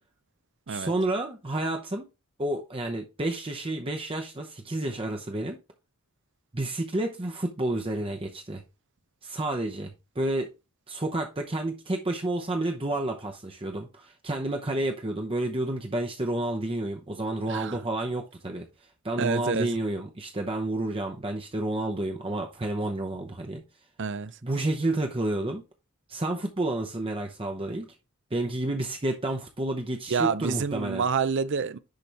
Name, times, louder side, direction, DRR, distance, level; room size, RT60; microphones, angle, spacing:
voice 1, 0.7-2.1 2.4-5.6 6.5-8.6 9.2-10.5 10.9-18.7 19.0-23.6 24.4-25.6 26.1-27.9 28.3-31.0, right 1 dB, 25° right, 0.8 m, -30 dB
voice 2, 17.5-17.8 19.2-19.8 24.0-24.4 30.1-31.8, right 5 dB, 55° right, 0.5 m, -28 dB
10.5 x 4.3 x 3.4 m
head